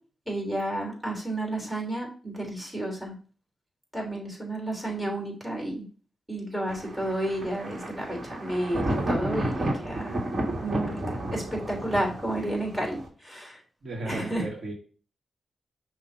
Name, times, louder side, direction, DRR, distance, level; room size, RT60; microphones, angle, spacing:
voice 1, 0.3-3.1 3.9-5.8 6.3-10.2 10.6-13.6 14.0-14.5, right 1 dB, 5° right, -1 dB, 3.3 m, -31 dB
Thunder, 6.7-13.1, right 1 dB, 45° right, 1.9 m, -32 dB
voice 2, 13.8-14.7, right 2 dB, 65° right, -1 dB, 1.7 m, -35 dB
5.8 x 2.9 x 5.5 m, 0.39 s
cardioid pair, 55°, 0 cm